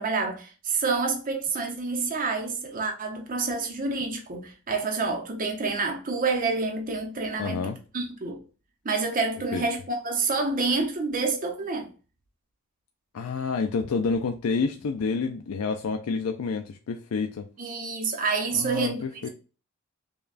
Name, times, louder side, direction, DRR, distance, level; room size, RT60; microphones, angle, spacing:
voice 1, 0.0-8.4 8.8-11.9 17.6-19.3, right 4 dB, 40° right, 0.7 m, -28 dB
voice 2, 7.4-7.8 9.5-9.6 13.1-17.5 18.5-19.3, left 4 dB, 90° left, 0.4 m, -28 dB
5.2 x 2.3 x 2.4 m
head